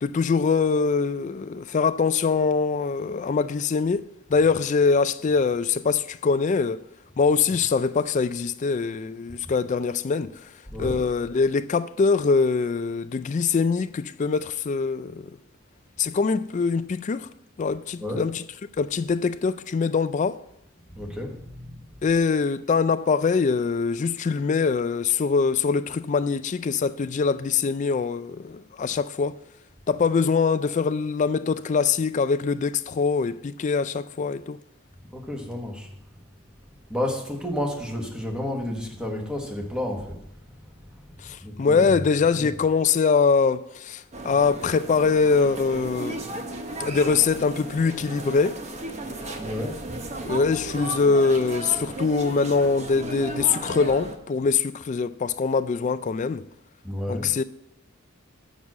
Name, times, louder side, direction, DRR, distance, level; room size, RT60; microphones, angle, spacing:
voice 1, 0.0-6.8 7.2-10.5 10.8-15.3 16.0-17.3 17.6-18.4 18.8-20.4 22.0-29.4 29.9-34.6 41.2-46.2 46.8-48.6 50.3-56.5 57.1-57.4, left 5 dB, 35° left, 0.3 m, -23 dB
voice 2, 10.7-11.0 18.0-18.4 20.9-22.2 35.1-35.9 36.9-40.7 41.2-41.9 42.3-42.6 49.4-49.8 56.8-57.3, left 1 dB, 5° right, 1.3 m, -32 dB
sound 1, 44.1-54.2, right 2 dB, 30° right, 0.8 m, -35 dB
7.2 x 6.2 x 7.4 m
head